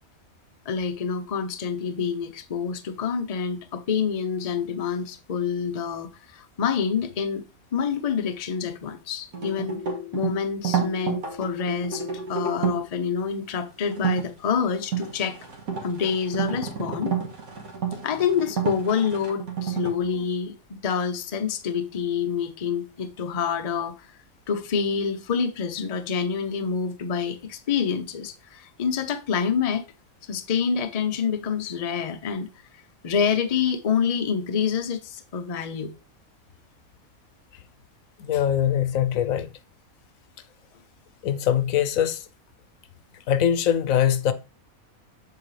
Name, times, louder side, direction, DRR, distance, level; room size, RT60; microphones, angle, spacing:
voice 1, 0.7-7.5 7.7-9.8 10.1-12.0 12.3-15.4 15.8-17.2 18.0-24.1 24.5-29.8 30.3-35.9, left 6 dB, 40° left, 0.5 m, -27 dB
sound 1, 9.3-12.9 13.9-14.2 14.7-19.9, right 6 dB, 80° right, 1.9 m, -30 dB
voice 2, 38.2-39.5 41.2-42.2 43.3-44.3, left 10 dB, 75° left, 1.0 m, -22 dB
7.3 x 4.8 x 3.2 m
omnidirectional pair, 1.5 m